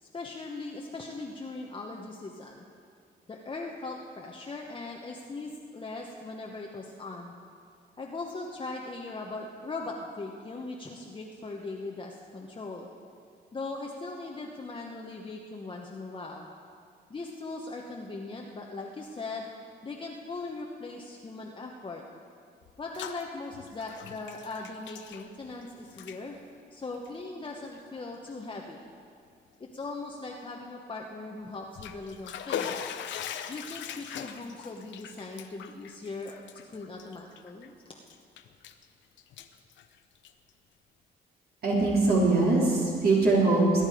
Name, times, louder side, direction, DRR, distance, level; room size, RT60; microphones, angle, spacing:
voice 1, 0.0-2.6 3.3-7.3 8.0-12.9 13.5-16.5 17.1-19.5 19.8-22.0 22.8-26.4 26.7-28.8 29.6-32.9 33.5-38.0, left 3 dB, 25° left, -1 dB, 1.1 m, -39 dB
Bathtub (filling or washing), 22.6-23.2 23.5-25.6 25.9-26.2 26.9-27.1 27.7-27.8 28.3-28.4 31.5-37.7 38.1-38.8 39.2-40.5, left 9 dB, 80° left, 0.8 m, -40 dB
voice 2, 41.6-43.8, right 3 dB, 55° right, -5 dB, 3.6 m, -22 dB
20.5 x 9.6 x 5.0 m, 2.3 s
cardioid pair, 100°, 19 cm